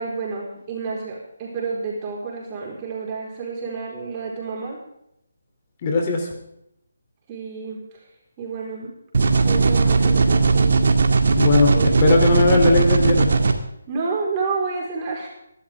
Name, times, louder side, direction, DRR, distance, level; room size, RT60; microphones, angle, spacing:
voice 1, 0.0-4.8 7.3-8.1 8.4-8.9 9.4-10.8 11.7-12.0 13.9-15.3, right 4 dB, 25° right, -3 dB, 4.5 m, -29 dB
voice 2, 5.8-6.3 11.3-11.7 12.0-13.3, left 3 dB, 30° left, 1 dB, 3.1 m, -18 dB
sound 1, 9.1-13.5, right 4 dB, 55° right, 2.0 m, -18 dB
24.5 x 12.5 x 3.6 m, 0.78 s
figure-of-eight pair, 150°, 0 cm